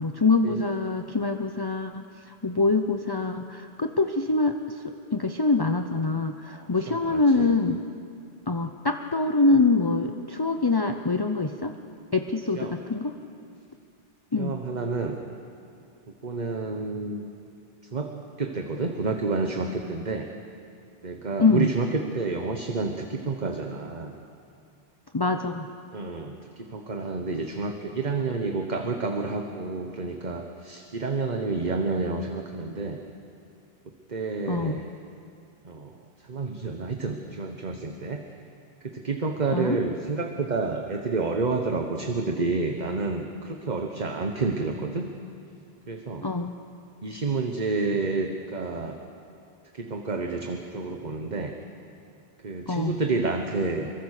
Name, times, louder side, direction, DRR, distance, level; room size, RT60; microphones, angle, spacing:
voice 1, 0.0-4.6 5.1-7.8 8.5-11.7 12.1-13.1 14.3-14.6 21.4-21.7 25.1-25.7 34.5-34.8 39.5-39.8 46.2-46.6 52.7-53.0, left 3 dB, 25° left, 6 dB, 0.8 m, -24 dB
voice 2, 6.4-7.5 12.5-12.8 14.4-15.2 16.2-17.3 17.9-20.3 21.0-24.1 25.9-33.0 33.9-34.8 35.6-35.9 36.2-38.2 38.8-45.1 45.9-46.3 47.0-49.0 49.7-51.6 52.4-53.9, right 3 dB, 45° right, 4 dB, 1.4 m, -29 dB
26.0 x 23.0 x 6.6 m, 2.5 s
omnidirectional pair, 1.0 m